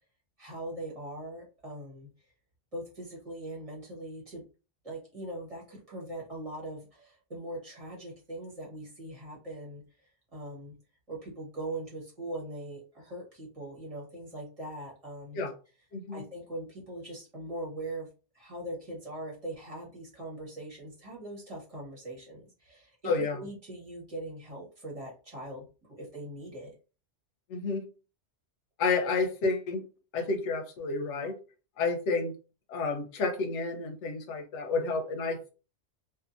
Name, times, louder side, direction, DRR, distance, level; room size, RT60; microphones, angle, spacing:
voice 1, 0.4-2.1 2.7-4.4 4.8-10.7 11.1-15.4 16.1-18.1 18.3-23.0 23.3-26.7, right 1 dB, 30° right, -3 dB, 1.1 m, -41 dB
voice 2, 15.9-16.2 23.1-23.4 27.5-27.8 28.8-29.8 30.1-31.3 31.8-32.3 32.7-35.5, left 4 dB, 90° left, 5 dB, 0.9 m, -30 dB
2.6 x 2.4 x 2.4 m, 0.34 s
omnidirectional pair, 1.2 m